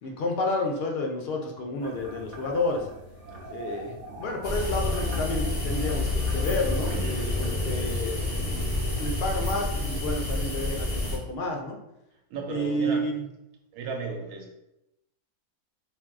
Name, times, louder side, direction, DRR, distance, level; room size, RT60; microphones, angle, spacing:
voice 1, 0.0-2.9 3.5-8.3 9.0-11.8 12.5-13.3, left 1 dB, 60° left, 2 dB, 0.6 m, -30 dB
sound 1, 1.8-7.5, right 2 dB, 70° right, 1.1 m, -43 dB
sound 2, 4.4-11.2, left 2 dB, 25° left, 0.4 m, -28 dB
voice 2, 6.9-7.4 12.3-13.1 13.7-14.6, right 4 dB, 90° right, 3 dB, 1.1 m, -35 dB
2.6 x 2.3 x 3.5 m, 0.86 s
omnidirectional pair, 1.5 m